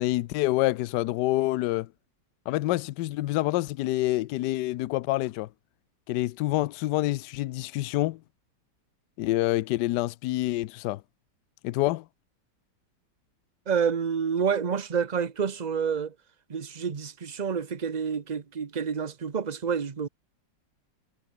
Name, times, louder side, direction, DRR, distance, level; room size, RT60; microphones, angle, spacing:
voice 1, 0.0-1.9 2.5-5.5 6.1-8.2 9.2-11.0 11.6-12.0, left 17 dB, 75° left, 1.1 m, -27 dB
voice 2, 13.7-16.1 16.5-20.1, right 6 dB, 30° right, 0.9 m, -28 dB
omnidirectional pair, 2.0 m